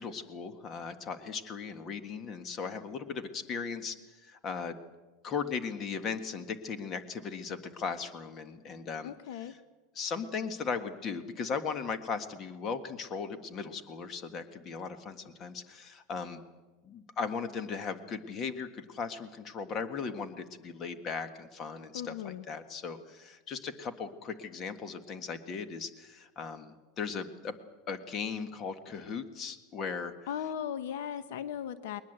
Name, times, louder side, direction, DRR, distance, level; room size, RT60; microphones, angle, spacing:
voice 1, 0.0-4.0 4.2-4.8 5.2-9.6 9.9-16.4 16.8-27.5 27.9-30.1, left 5 dB, 30° left, 10 dB, 1.6 m, -37 dB
voice 2, 9.0-9.5 21.9-22.4 30.3-32.0, left 9 dB, 80° left, 13 dB, 1.1 m, -37 dB
21.0 x 20.0 x 8.1 m, 1.2 s
supercardioid pair, 150°, 0 cm